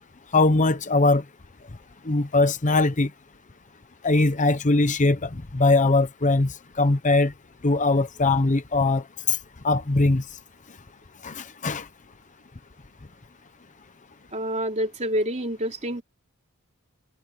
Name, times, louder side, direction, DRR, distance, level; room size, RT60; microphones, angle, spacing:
voice 1, 0.3-1.2 2.1-3.1 4.0-6.5 6.8-7.3 7.6-9.0 9.3-9.4 9.6-10.2 11.2-11.8, left 3 dB, 35° left, 0.8 m, -21 dB
voice 2, 14.3-16.0, equal, 30° right, 3.2 m, -27 dB
head